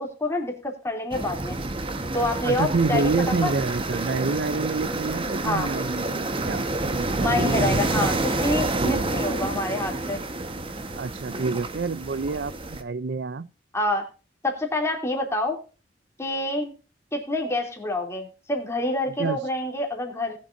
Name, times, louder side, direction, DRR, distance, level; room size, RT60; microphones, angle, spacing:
voice 1, 0.0-1.6 2.1-3.1 3.4-3.5 5.4-5.7 7.2-10.2 13.7-14.0 14.4-15.6 16.2-16.7 17.1-20.4, left 2 dB, 15° left, 3.0 m, -27 dB
sound 1, 1.1-12.8, right 2 dB, 30° right, 1.3 m, -28 dB
voice 2, 2.4-8.1 8.7-9.1 11.0-13.5 19.2-19.4, right 4 dB, 70° right, 0.5 m, -28 dB
20.0 x 7.5 x 2.6 m
head